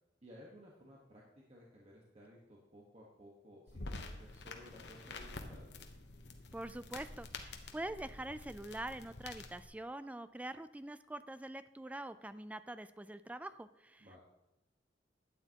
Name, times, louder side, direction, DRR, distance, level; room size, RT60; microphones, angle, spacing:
voice 1, 0.2-5.7 14.0-14.2, equal, 35° right, -3 dB, 1.4 m, -57 dB
sound 1, 3.7-9.7, left 2 dB, 65° left, 1.0 m, -48 dB
voice 2, 6.5-14.2, right 1 dB, 10° right, 13 dB, 0.3 m, -45 dB
12.0 x 8.9 x 3.0 m, 0.97 s
head